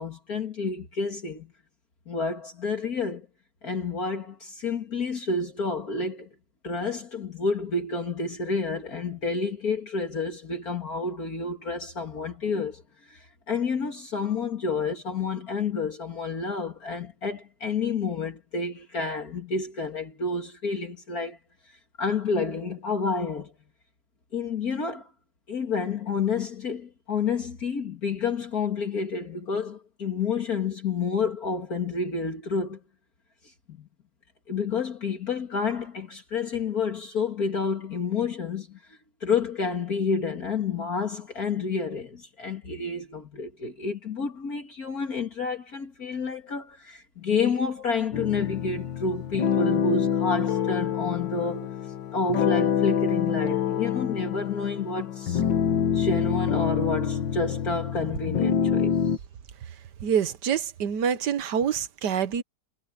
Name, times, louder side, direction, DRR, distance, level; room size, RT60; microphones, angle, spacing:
voice 1, 0.0-1.5 2.1-3.3 3.6-6.3 6.6-12.8 13.1-21.4 22.0-23.5 24.3-25.1 25.5-32.8 33.8-33.9 34.5-38.8 39.2-51.7 52.1-55.4 55.9-58.9, left 4 dB, 55° left, 2.7 m, -29 dB
sound 1, 48.1-59.2, left 8 dB, 85° left, 1.9 m, -26 dB
voice 2, 60.0-62.4, right 8 dB, 70° right, 1.7 m, -26 dB
omnidirectional pair, 1.9 m